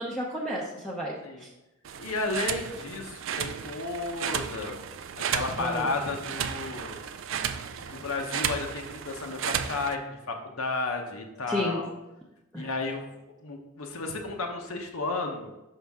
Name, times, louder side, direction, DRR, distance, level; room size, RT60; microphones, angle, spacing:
voice 1, 0.0-1.1 1.4-1.5 5.6-5.9 11.5-11.8 12.5-12.7, equal, 5° left, -5 dB, 0.6 m, -31 dB
sound 1, 1.9-10.0, right 8 dB, 65° right, 0.4 m, -34 dB
voice 2, 2.0-4.8 5.2-7.0 7.3-7.4 7.7-11.9 12.5-13.1 13.4-15.5, left 3 dB, 85° left, 2 dB, 0.8 m, -33 dB
5.7 x 5.3 x 3.5 m, 0.98 s
head